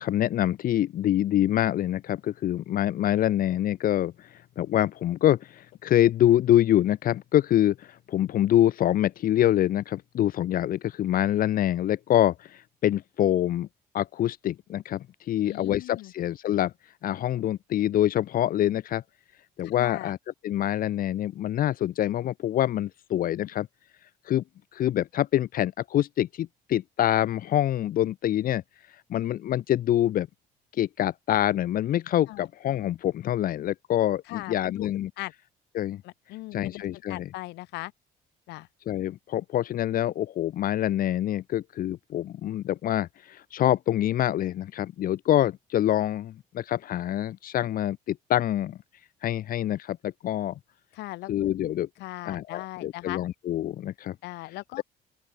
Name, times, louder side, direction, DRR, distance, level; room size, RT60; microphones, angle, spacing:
voice 1, 0.0-13.7 13.9-16.7 17.0-19.0 19.6-20.2 20.4-23.7 24.3-24.4 24.7-28.6 29.1-30.3 30.8-35.1 35.7-36.0 36.5-37.3 38.9-48.8 49.2-50.6 51.3-51.9 52.3-54.1, left 12 dB, 60° left, 1.0 m, -25 dB
voice 2, 15.4-16.1 19.6-20.1 32.3-32.5 34.3-34.9 35.2-35.3 36.0-37.9 38.5-38.7 50.9-51.5 52.0-53.2 54.2-54.8, left 19 dB, 90° left, 4.2 m, -39 dB
open air
cardioid pair, 110°, 17 cm